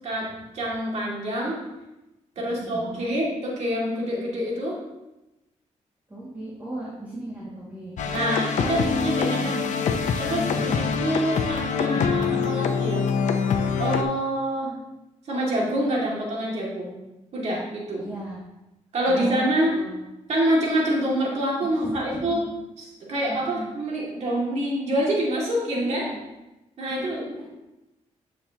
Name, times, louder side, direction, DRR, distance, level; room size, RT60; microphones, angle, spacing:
voice 1, 0.5-1.6 2.4-4.8 8.1-9.6 10.2-13.0 13.8-14.7 15.3-17.0 17.3-18.0 18.9-19.7 20.3-22.4 22.8-26.0 26.8-27.2, right 1 dB, 60° right, -3 dB, 2.3 m, -26 dB
voice 2, 2.5-3.2 6.1-8.3 9.3-9.8 10.3-10.9 18.0-18.4 19.1-20.0 21.6-22.5 23.3-23.7 25.8-26.2 26.9-27.5, right 1 dB, 15° right, -7 dB, 2.1 m, -36 dB
sound 1, 8.0-14.0, left 6 dB, 75° left, 0.7 m, -25 dB
11.5 x 6.3 x 2.9 m, 0.98 s
wide cardioid pair, 135°, 13 cm